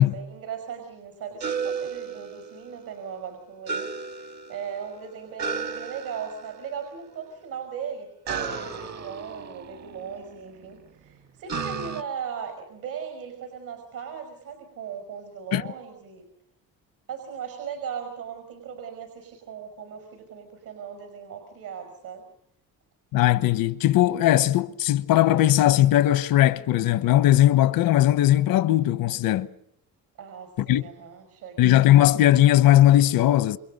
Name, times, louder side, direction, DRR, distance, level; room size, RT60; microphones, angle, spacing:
voice 1, 0.0-8.1 8.4-16.3 17.1-22.2 30.2-32.0, right 7 dB, 75° right, 5.5 m, -38 dB
sound 1, 1.4-2.9 3.6-4.9 5.4-6.6 8.2-10.3 11.5-12.0, right 5 dB, 55° right, 1.6 m, -33 dB
voice 2, 23.1-29.5 30.7-30.8 31.6-33.6, left 13 dB, 90° left, 1.1 m, -18 dB
29.0 x 27.0 x 5.4 m
cardioid pair, 115°, 33 cm